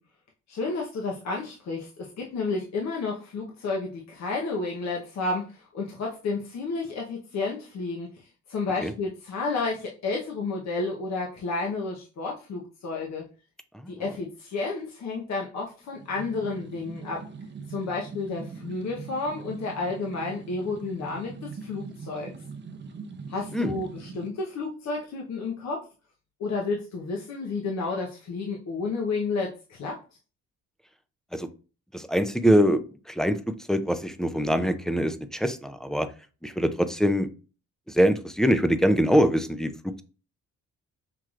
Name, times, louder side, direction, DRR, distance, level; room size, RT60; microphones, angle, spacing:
voice 1, 0.5-13.2 13.9-17.2 17.7-22.3 23.3-25.9 26.4-30.0, left 3 dB, 60° left, -1 dB, 0.9 m, -31 dB
sound 1, 15.9-24.3, right 5 dB, 35° right, 0.7 m, -42 dB
voice 2, 31.9-33.4 33.7-36.1 36.4-37.3 37.9-40.0, equal, ahead, 10 dB, 0.4 m, -23 dB
5.8 x 3.1 x 2.4 m, 0.35 s
cardioid pair, 90°, 30 cm